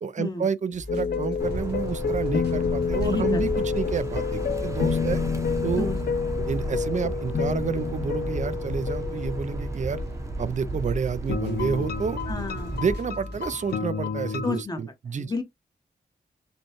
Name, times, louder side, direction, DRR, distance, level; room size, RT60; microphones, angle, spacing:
voice 1, 0.0-5.2 5.6-5.9 6.5-10.0 10.4-12.2 12.7-15.3, right 6 dB, 45° right, 0.4 m, -29 dB
sound 1, 0.7-6.9 7.3-13.7, equal, 90° right, 2.0 m, -44 dB
sound 2, 0.9-10.1 11.3-14.6, left 6 dB, 65° left, 0.4 m, -29 dB
sound 3, 1.4-12.9, right 1 dB, 15° right, 0.9 m, -32 dB
voice 2, 2.9-3.4 5.8-6.0 12.3-12.8 14.4-14.8 15.1-15.4, left 3 dB, 25° left, 1.0 m, -31 dB
5.2 x 2.3 x 2.9 m
wide cardioid pair, 120°, 17 cm